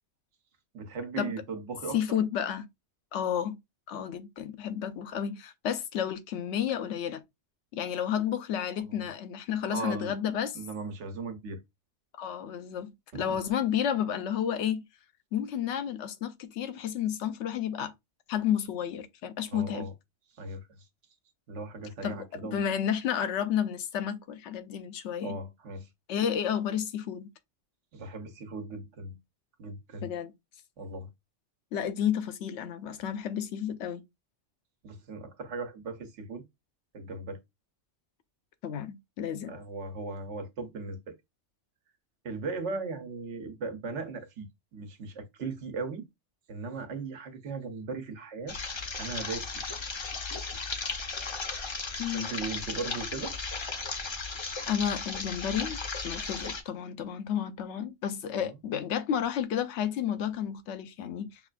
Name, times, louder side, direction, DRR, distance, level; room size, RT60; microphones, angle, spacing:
voice 1, 0.7-2.2 8.9-9.1 9.7-10.1 10.5-11.6 13.1-13.4 19.5-19.9 20.4-20.7 21.5-22.6 25.2-25.9 27.9-29.2 29.6-30.1 30.8-31.1 34.8-36.4 36.9-37.4 39.5-41.2 42.2-46.1 46.5-48.6 49.0-49.6 52.1-53.4 58.3-58.6, right 3 dB, 85° right, 1.1 m, -38 dB
voice 2, 1.9-2.7 3.1-3.6 3.9-7.2 7.7-10.6 12.2-14.8 15.3-17.9 18.3-19.9 22.0-22.2 22.4-25.4 26.1-27.3 30.0-30.3 31.7-34.0 38.6-39.6 45.4-45.5 52.0-52.3 54.7-61.4, left 9 dB, 80° left, 0.9 m, -31 dB
sound 1, 48.5-56.6, left 4 dB, 40° left, 0.4 m, -35 dB
5.6 x 2.2 x 2.4 m
omnidirectional pair, 1.2 m